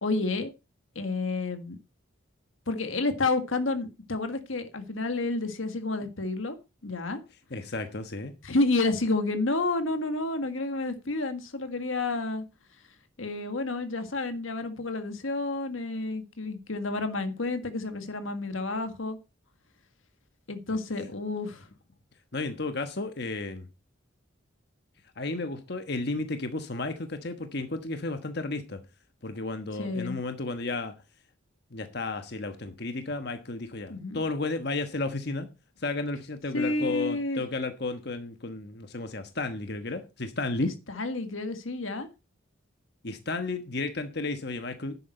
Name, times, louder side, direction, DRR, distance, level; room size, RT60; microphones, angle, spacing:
voice 1, 0.0-0.5 0.9-1.8 2.7-6.6 6.8-7.2 8.4-12.4 13.2-19.2 20.5-21.7 29.8-30.2 33.9-34.2 36.5-37.4 41.0-42.1, left 2 dB, 85° left, 1.7 m, -30 dB
voice 2, 7.5-8.3 22.3-23.7 25.2-28.8 29.2-30.9 31.7-35.5 35.8-40.7 43.0-45.0, left 2 dB, 55° left, 1.3 m, -33 dB
11.0 x 8.6 x 4.4 m
head